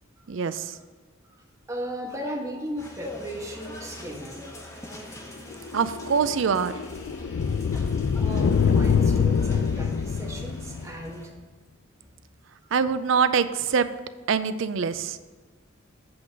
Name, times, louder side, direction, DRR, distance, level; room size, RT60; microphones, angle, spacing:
voice 1, 0.3-0.7 5.7-6.7 12.7-13.9 14.3-15.2, right 6 dB, 65° right, 13 dB, 0.4 m, -24 dB
voice 2, 1.7-4.5 8.1-11.3, right 1 dB, 15° right, -1 dB, 1.2 m, -36 dB
sound 1, 2.8-11.3, left 1 dB, 15° left, 1.0 m, -43 dB
sound 2, 5.5-11.1, left 6 dB, 65° left, 0.3 m, -25 dB
7.8 x 3.9 x 6.0 m, 1.4 s
head